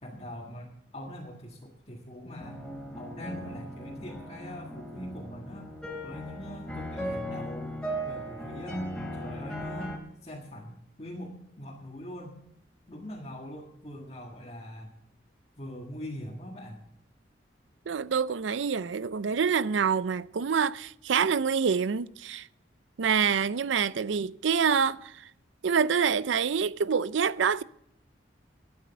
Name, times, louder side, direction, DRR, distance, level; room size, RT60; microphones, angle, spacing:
voice 1, 0.0-2.6 3.0-5.7 6.0-7.8 8.1-8.8 9.1-10.0 10.2-12.4 12.9-14.9 15.6-16.8, left 1 dB, 35° left, 1.7 m, -42 dB
sound 1, 2.4-10.0, equal, 5° left, 3.0 m, -37 dB
voice 2, 17.9-22.5 23.0-25.3 25.6-27.6, right 6 dB, 85° right, 0.5 m, -26 dB
12.5 x 9.5 x 6.7 m
head